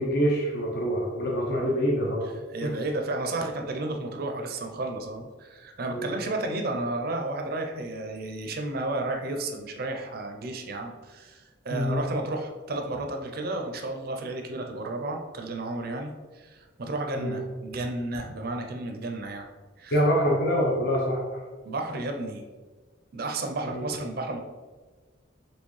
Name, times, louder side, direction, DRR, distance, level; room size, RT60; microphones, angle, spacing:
voice 1, 0.0-2.3 2.6-2.7 5.9-6.1 11.7-12.0 17.1-17.4 19.9-21.2 23.7-23.8, equal, 55° left, -3 dB, 0.7 m, -25 dB
voice 2, 2.5-19.5 19.8-20.0 21.7-22.4 23.1-24.4, right 2 dB, 50° right, 4 dB, 0.5 m, -32 dB
4.4 x 3.2 x 3.1 m, 1.4 s
head